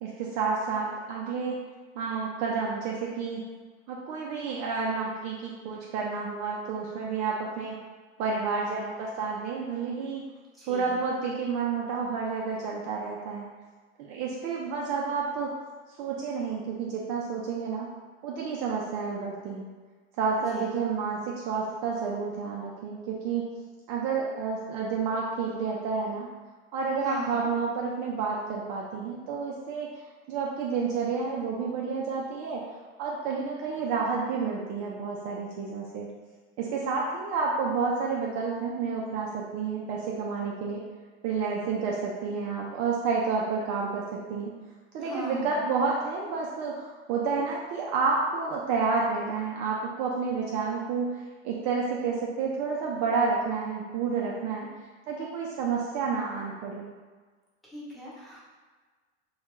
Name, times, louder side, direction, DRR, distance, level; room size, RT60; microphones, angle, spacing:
voice 1, 0.0-1.6 1.9-3.5 3.9-7.8 8.2-10.2 10.7-13.5 14.0-15.5 16.0-17.9 18.2-19.7 20.2-23.5 23.9-26.3 26.7-29.9 30.3-32.6 33.0-36.1 36.6-40.8 41.2-44.6 44.9-51.2 51.4-54.7 55.1-56.9, right 5 dB, 50° right, -2 dB, 0.4 m, -30 dB
voice 2, 10.5-11.0 20.5-20.8 27.0-27.5 45.0-45.6 57.6-58.4, equal, ahead, -9 dB, 0.8 m, -39 dB
2.3 x 2.1 x 2.9 m, 1.4 s
hypercardioid pair, 100°, 36 cm